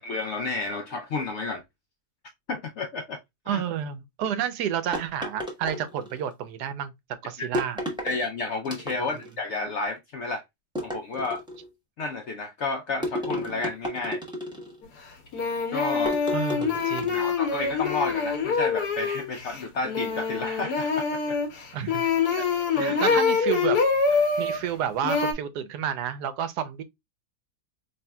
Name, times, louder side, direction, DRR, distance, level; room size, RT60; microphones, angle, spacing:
voice 1, 0.0-1.6 2.5-3.2 3.5-3.6 7.4-7.5 8.0-10.4 10.8-11.4 12.0-14.2 15.7-16.2 17.1-21.4 22.8-23.2, left 3 dB, 70° left, 0.6 m, -31 dB
voice 2, 3.5-6.9 7.2-7.8 16.3-17.2 21.7-22.1 22.4-22.5 22.8-23.8 24.1-26.8, right 9 dB, 90° right, 1.2 m, -30 dB
sound 1, 4.9-6.3 7.5-8.2 8.6-9.3 10.8-11.7 13.0-14.8 16.0-17.3, equal, 5° right, 0.6 m, -33 dB
sound 2, 14.8-14.9 15.3-24.6 25.0-25.3, left 5 dB, 85° left, 1.4 m, -25 dB
4.2 x 3.2 x 2.2 m
omnidirectional pair, 1.7 m